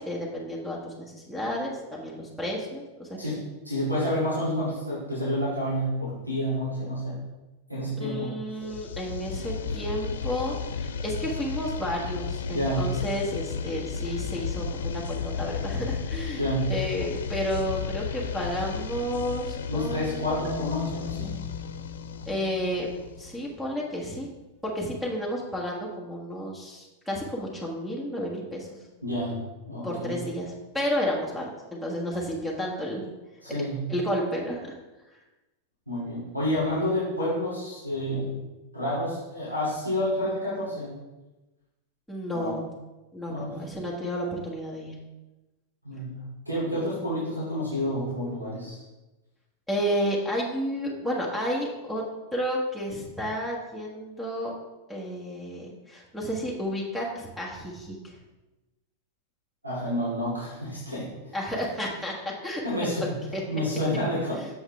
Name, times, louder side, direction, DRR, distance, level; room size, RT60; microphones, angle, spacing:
voice 1, 0.0-3.4 8.0-20.4 22.3-22.9 23.2-24.3 24.6-28.7 29.8-33.0 33.9-34.7 42.1-42.6 43.1-45.0 49.7-52.0 52.3-54.5 54.9-58.2 61.3-62.6 63.3-63.4 64.4-64.5, equal, 5° right, -4 dB, 1.5 m, -31 dB
voice 2, 3.2-7.2 7.7-8.6 12.5-12.9 16.4-16.7 19.7-21.4 29.0-30.1 33.4-33.9 35.9-38.4 38.7-41.0 42.3-42.5 43.3-43.6 45.8-48.8 59.6-61.4 62.6-64.4, equal, 90° right, -8 dB, 2.7 m, -29 dB
sound 1, 8.7-23.5, left 6 dB, 65° left, 0.5 m, -34 dB
Marimba xylophone, 20.4-23.4, left 7 dB, 35° right, 1.7 m, -39 dB
7.9 x 7.1 x 3.5 m, 1.1 s
figure-of-eight pair, 90°, 0 cm